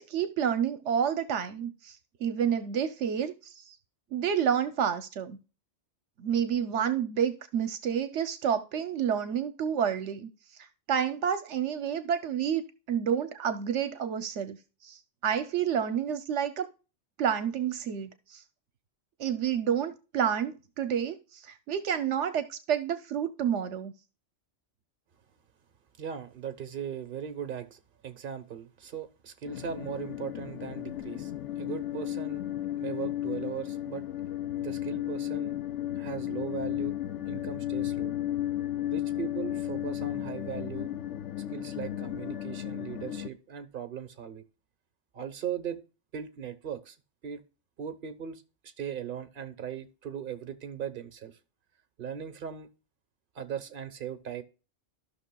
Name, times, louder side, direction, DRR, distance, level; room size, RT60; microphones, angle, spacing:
voice 1, 0.0-3.8 4.1-5.4 6.2-10.3 10.6-16.7 17.2-18.4 19.2-23.9, right 8 dB, 80° right, 1.0 m, -29 dB
voice 2, 26.0-31.3 31.6-32.5 32.8-34.1 34.6-35.5 36.0-36.9 37.3-38.1 38.9-40.9 41.5-44.4 45.1-45.8 46.1-47.0 47.2-47.4 47.8-51.4 52.0-52.7 53.3-54.4, right 8 dB, 50° right, 1.1 m, -38 dB
sound 1, 29.4-43.3, left 12 dB, 80° left, 0.9 m, -34 dB
14.5 x 5.9 x 2.2 m
omnidirectional pair, 1.2 m